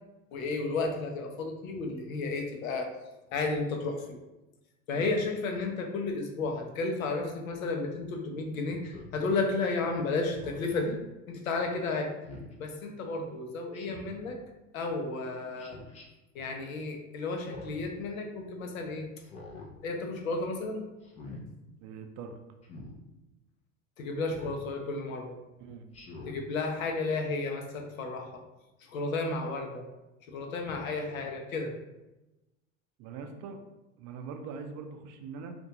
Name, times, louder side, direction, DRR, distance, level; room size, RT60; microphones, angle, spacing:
voice 1, 0.3-2.9 3.3-4.2 4.9-11.0 11.3-12.1 12.6-14.4 14.7-15.8 16.3-19.1 19.8-20.8 24.0-25.4 26.3-28.2 28.9-29.8 30.3-31.7, left 3 dB, 85° left, 3 dB, 0.6 m, -32 dB
Speech synthesizer, 8.8-9.2 10.3-10.8 12.2-12.5 13.7-14.2 15.6-16.0 17.3-17.9 19.2-19.7 21.0-21.4 22.6-22.9 24.3-24.6 25.9-26.4, left 2 dB, 20° left, 0.4 m, -45 dB
voice 2, 21.8-22.4 25.6-25.9 33.0-33.6 34.0-35.6, right 5 dB, 45° right, 6 dB, 0.4 m, -42 dB
2.5 x 2.2 x 2.7 m, 1.0 s
hypercardioid pair, 90°, 40 cm